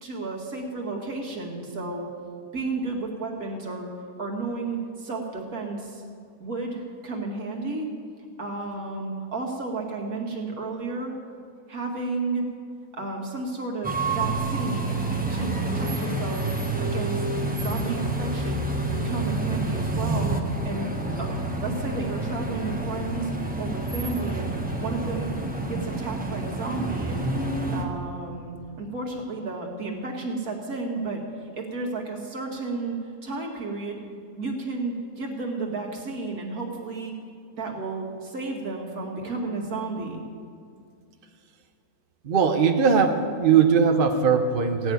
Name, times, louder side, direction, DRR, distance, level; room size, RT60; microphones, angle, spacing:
voice 1, 0.0-2.1 2.5-3.9 4.2-6.0 6.4-7.9 8.4-11.1 11.7-12.4 12.9-15.0 15.3-16.5 16.8-17.2 17.5-20.4 20.7-20.9 21.2-23.3 23.6-24.5 24.8-25.3 25.7-27.3 27.7-33.0 33.2-34.0 34.4-37.1 37.5-40.2, right 3 dB, 70° right, -1 dB, 2.3 m, -32 dB
sound 1, 13.8-27.8, right 2 dB, 5° right, 1.0 m, -28 dB
voice 2, 42.2-44.9, right 6 dB, 45° right, 5 dB, 0.8 m, -20 dB
16.0 x 6.3 x 9.3 m, 2.3 s
omnidirectional pair, 1.6 m